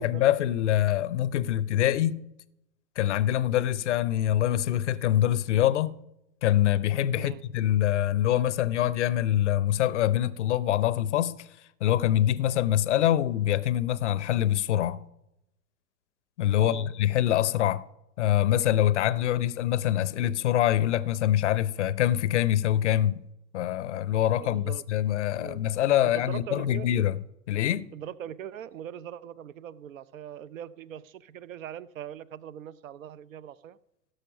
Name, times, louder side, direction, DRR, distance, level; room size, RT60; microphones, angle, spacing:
voice 1, 0.0-2.2 3.0-6.0 6.4-11.4 11.8-15.0 16.4-17.8 18.2-23.2 23.5-27.2 27.5-27.8, left 12 dB, 45° left, 0.6 m, -25 dB
voice 2, 7.1-7.5 16.6-16.9 24.4-24.8 25.4-25.6 26.0-26.9 27.9-33.8, right 10 dB, 55° right, 0.6 m, -41 dB
16.5 x 6.6 x 5.2 m
figure-of-eight pair, 105°, 50 cm